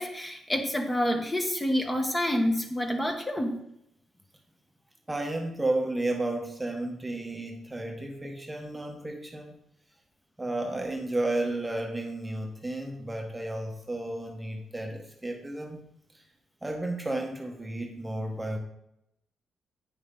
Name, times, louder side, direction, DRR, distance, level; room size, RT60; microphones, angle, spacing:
voice 1, 0.0-3.6, equal, 15° left, 3 dB, 1.3 m, -28 dB
voice 2, 5.1-9.5 10.4-15.9 16.1-16.3 16.6-18.6, right 2 dB, 15° right, 2 dB, 1.1 m, -32 dB
9.0 x 6.1 x 3.7 m, 0.79 s
cardioid pair, 105°, 0 cm